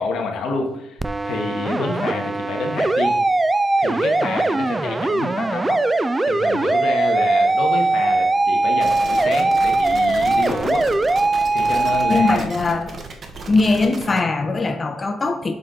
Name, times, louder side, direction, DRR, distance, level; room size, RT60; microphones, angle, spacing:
voice 1, 0.0-3.2 3.8-5.8 6.2-10.9 11.5-12.5, left 3 dB, 80° left, 2 dB, 1.3 m, -28 dB
sound 1, 1.0-12.4, right 2 dB, 20° right, 0.3 m, -20 dB
sound 2, 8.8-14.2, right 3 dB, 50° right, 1.0 m, -35 dB
voice 2, 12.1-12.9 13.5-15.5, left 3 dB, 30° left, 6 dB, 0.7 m, -20 dB
6.6 x 4.0 x 3.8 m, 0.85 s
cardioid pair, 90°, 0 cm